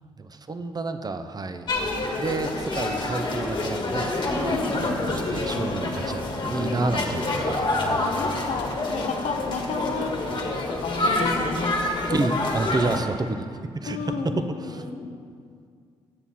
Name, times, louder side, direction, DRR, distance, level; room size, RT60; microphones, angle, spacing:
voice 1, 0.2-1.7 2.2-7.7 12.1-13.5 13.7-14.8, right 3 dB, 35° right, 9 dB, 0.7 m, -29 dB
sound 1, 1.7-13.0, left 2 dB, 40° left, 1.5 m, -27 dB
voice 2, 8.0-10.2 10.7-11.8 13.9-15.2, left 4 dB, 70° left, 4 dB, 1.0 m, -31 dB
8.6 x 7.1 x 4.2 m, 2.2 s
supercardioid pair, 50°, 12 cm